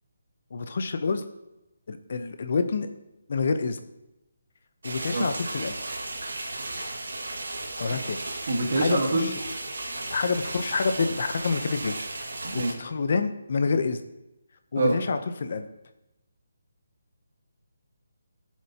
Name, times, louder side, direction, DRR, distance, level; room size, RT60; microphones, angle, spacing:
voice 1, 0.5-1.2 1.9-2.9 3.3-3.8 4.8-5.8 7.8-8.2 8.7-9.3 10.1-14.0 14.7-15.7, left 4 dB, 40° left, 8 dB, 0.8 m, -28 dB
sound 1, 4.8-12.7, right 2 dB, 85° right, 1.9 m, -35 dB
voice 2, 8.5-9.3 12.4-12.7 14.7-15.0, right 2 dB, 45° right, 2 dB, 1.6 m, -25 dB
17.5 x 7.4 x 2.9 m, 0.96 s
hypercardioid pair, 175°, 0 cm